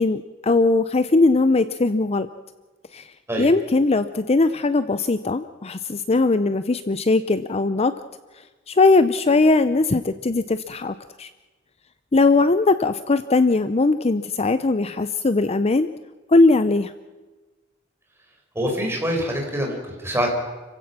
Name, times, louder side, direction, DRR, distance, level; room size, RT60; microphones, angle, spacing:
voice 1, 0.0-2.3 2.9-3.1 3.4-7.9 8.7-11.3 12.1-15.9 16.3-16.9, left 3 dB, 30° left, 12 dB, 0.6 m, -19 dB
voice 2, 18.5-20.3, equal, 15° right, 1 dB, 5.0 m, -25 dB
30.0 x 16.0 x 6.0 m, 1.3 s
head